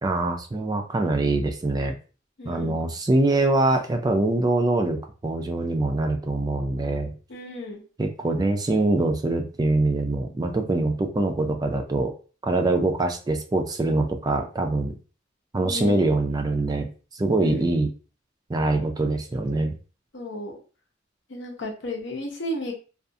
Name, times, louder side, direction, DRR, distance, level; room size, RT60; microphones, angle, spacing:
voice 1, 0.0-1.9 2.4-7.1 8.0-12.1 12.4-15.0 15.5-16.9 17.1-17.9 18.5-19.7, right 2 dB, 20° right, 5 dB, 0.3 m, -24 dB
voice 2, 2.4-2.8 7.3-7.8 15.6-16.0 17.4-17.7 20.1-20.5 21.3-22.7, left 1 dB, 65° left, 0 dB, 0.7 m, -33 dB
2.4 x 2.4 x 2.6 m, 0.36 s
head